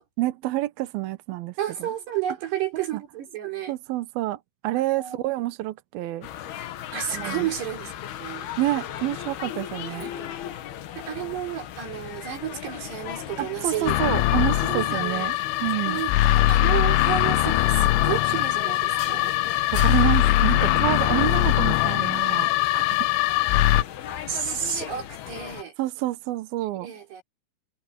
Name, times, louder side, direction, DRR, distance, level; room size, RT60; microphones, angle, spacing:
voice 1, 0.2-1.5 1.8-1.9 2.7-3.0 3.7-4.4 4.6-6.3 7.1-7.5 8.6-10.1 13.4-16.0 19.7-23.1 25.8-26.9, right 15 dB, 80° right, 2.2 m, -28 dB
voice 2, 1.6-3.7 5.0-5.2 6.9-7.9 8.2-8.5 10.0-10.3 11.0-14.0 14.7-15.3 15.9-19.4 21.5-21.6 24.3-25.7 26.8-27.2, right 10 dB, 55° right, 6.3 m, -31 dB
sound 1, 6.2-25.6, left 11 dB, 65° left, 2.8 m, -37 dB
sound 2, 13.9-23.8, left 15 dB, 90° left, 3.4 m, -21 dB
omnidirectional pair, 5.8 m